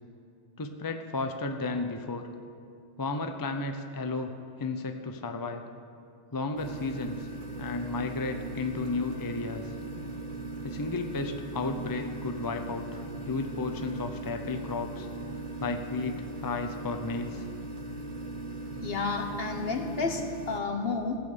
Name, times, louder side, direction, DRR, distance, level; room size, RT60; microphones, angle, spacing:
voice 1, 0.6-2.3 3.0-5.6 6.3-7.3 7.6-9.7 10.6-15.1 15.6-17.5, left 3 dB, 25° left, 6 dB, 0.6 m, -33 dB
sound 1, 6.6-20.6, right 2 dB, 50° right, 1.0 m, -39 dB
voice 2, 18.8-21.2, left 4 dB, 60° left, 4 dB, 1.4 m, -31 dB
15.5 x 8.7 x 6.7 m, 2.4 s
omnidirectional pair, 1.1 m